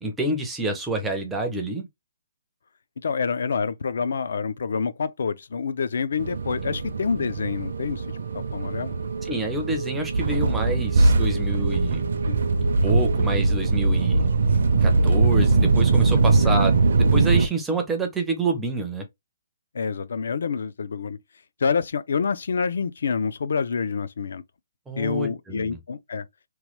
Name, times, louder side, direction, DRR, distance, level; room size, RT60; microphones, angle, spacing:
voice 1, 0.0-1.9 6.7-6.8 9.2-12.0 12.8-19.0 24.9-25.8, right 2 dB, 5° right, 0.4 m, -28 dB
voice 2, 3.0-8.2 8.5-8.9 12.3-12.4 16.4-16.5 19.7-21.2 21.6-24.4 25.0-26.3, left 5 dB, 60° left, 0.3 m, -27 dB
sound 1, 6.2-17.5, right 3 dB, 60° right, 0.5 m, -21 dB
3.0 x 2.2 x 3.0 m
hypercardioid pair, 175°, 0 cm